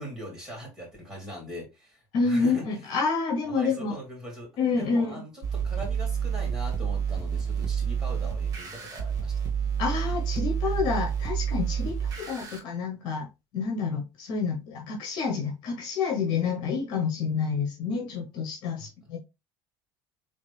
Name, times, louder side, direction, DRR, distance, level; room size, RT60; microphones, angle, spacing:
voice 1, 0.0-2.7 3.5-9.7 18.8-18.9, equal, 5° right, 3.1 m, -41 dB
voice 2, 2.1-4.0 4.6-5.1 9.8-13.3 13.5-19.2, left 5 dB, 65° left, 1.2 m, -28 dB
sound 1, 5.4-12.6, right 7 dB, 50° right, 1.6 m, -29 dB
4.2 x 3.5 x 3.4 m
cardioid pair, 135°, 8 cm